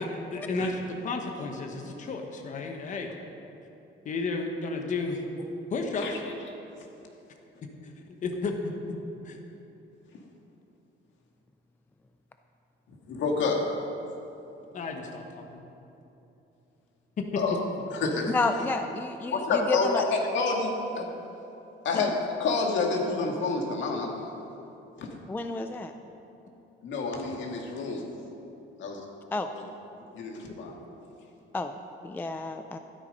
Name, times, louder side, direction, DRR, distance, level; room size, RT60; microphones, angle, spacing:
voice 1, 0.0-3.1 4.0-5.2 5.7-6.2 7.8-8.7 9.2-9.4 14.7-15.6, left 3 dB, 35° left, 3 dB, 1.1 m, -33 dB
voice 2, 13.1-13.7 17.4-17.6 18.0-18.3 19.3-21.1 21.8-24.1 25.0-25.1 26.8-28.0 28.8-29.0 29.5-29.6 30.1-30.8, left 4 dB, 65° left, 1 dB, 2.0 m, -28 dB
voice 3, 18.3-20.1 21.9-22.1 25.3-25.9 29.3-29.5 31.5-31.8 32.0-32.8, left 3 dB, 10° left, 7 dB, 0.3 m, -30 dB
13.0 x 12.5 x 5.3 m, 3.0 s
cardioid pair, 175°, 21 cm